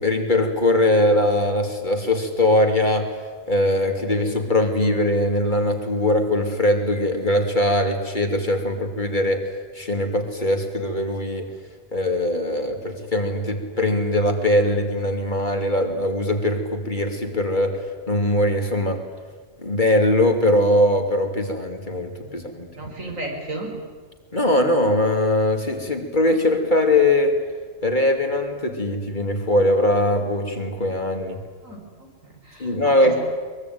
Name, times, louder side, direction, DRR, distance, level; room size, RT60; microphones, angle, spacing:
voice 1, 0.0-3.1 3.5-9.4 9.7-11.5 11.9-17.8 18.1-19.0 19.6-22.7 24.3-27.3 27.8-31.4 32.6-33.1, left 1 dB, 35° left, 4 dB, 2.9 m, -21 dB
voice 2, 22.2-23.9 31.6-33.2, right 1 dB, 85° right, 1 dB, 5.3 m, -35 dB
23.0 x 22.5 x 9.4 m, 1.5 s
omnidirectional pair, 1.3 m